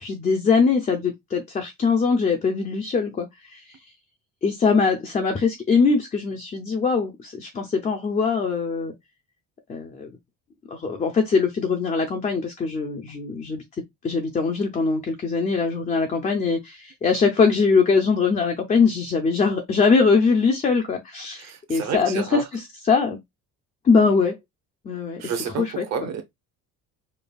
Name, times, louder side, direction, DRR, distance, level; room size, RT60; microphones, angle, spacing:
voice 1, 0.0-3.8 4.4-8.9 9.7-10.1 10.7-13.6 14.0-23.2 23.8-24.4 24.8-25.3 25.6-25.8, left 5 dB, 20° left, 0.4 m, -22 dB
voice 2, 21.4-22.4 25.2-26.2, right 7 dB, 45° right, 0.8 m, -30 dB
5.2 x 2.3 x 2.3 m
cardioid pair, 170°, 35 cm